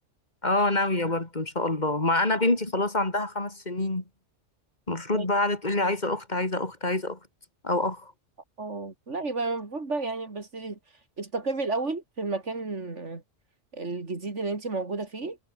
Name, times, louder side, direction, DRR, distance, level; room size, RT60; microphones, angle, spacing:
voice 1, 0.4-4.0 4.9-7.2 7.6-8.1, left 2 dB, 35° left, 3.2 m, -26 dB
voice 2, 8.6-10.8 11.2-13.2 13.7-15.4, right 3 dB, 75° right, 3.5 m, -32 dB
omnidirectional pair, 1.2 m